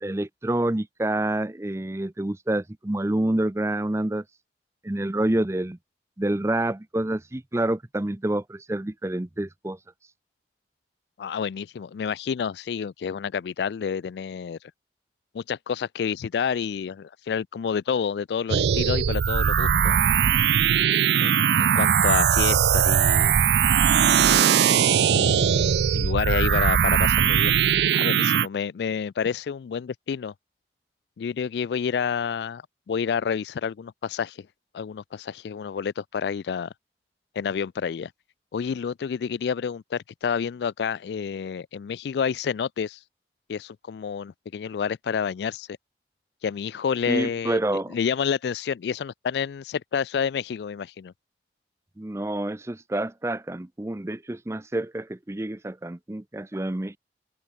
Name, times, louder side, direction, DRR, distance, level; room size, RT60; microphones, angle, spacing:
voice 1, 0.0-4.2 4.8-5.8 6.2-9.8 47.1-48.0 52.0-57.0, right 1 dB, 15° right, 0.5 m, -28 dB
voice 2, 11.2-14.6 15.3-20.0 21.2-23.4 25.1-27.6 27.9-30.3 31.2-32.6 32.9-34.5 34.7-36.7 37.4-38.1 38.5-43.0 43.5-45.7 46.4-51.1, left 7 dB, 75° left, 0.3 m, -29 dB
sound 1, 18.5-28.5, right 8 dB, 75° right, 0.4 m, -20 dB
Alarm, 23.6-26.6, left 2 dB, 10° left, 3.7 m, -50 dB
open air
head